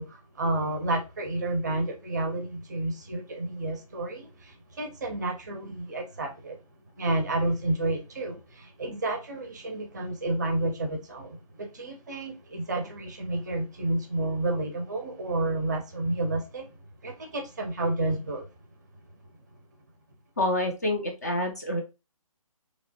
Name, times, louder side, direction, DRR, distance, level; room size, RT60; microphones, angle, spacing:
voice 1, 0.0-6.6 7.0-16.7 17.0-18.5, right 2 dB, 30° right, 0.5 m, -30 dB
voice 2, 20.4-21.8, left 1 dB, 30° left, 0.4 m, -27 dB
2.9 x 2.1 x 2.7 m
figure-of-eight pair, 145°, 19 cm